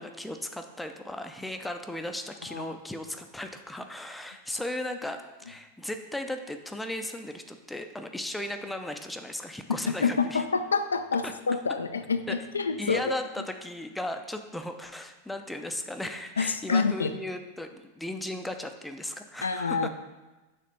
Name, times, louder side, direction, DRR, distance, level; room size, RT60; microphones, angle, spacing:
voice 1, 0.0-10.4 11.2-11.3 12.3-12.4 12.8-19.9, left 1 dB, 5° left, 6 dB, 0.5 m, -36 dB
voice 2, 9.7-13.1 16.4-17.1 19.4-19.9, left 5 dB, 75° left, 9 dB, 0.3 m, -27 dB
6.6 x 3.3 x 5.2 m, 1.1 s
figure-of-eight pair, 90°, 0 cm